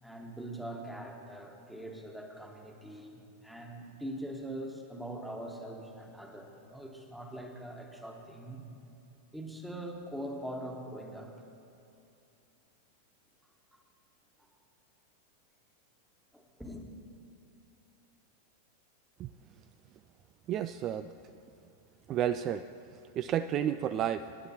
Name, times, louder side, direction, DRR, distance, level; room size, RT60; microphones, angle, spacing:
voice 1, 0.0-8.7 9.3-11.4 16.3-16.9, right 1 dB, 5° right, 2 dB, 1.5 m, -42 dB
voice 2, 20.5-21.1 22.1-22.6 22.9-24.2, right 10 dB, 35° right, 11 dB, 0.3 m, -31 dB
24.0 x 11.0 x 2.9 m, 2.6 s
figure-of-eight pair, 90°, 0 cm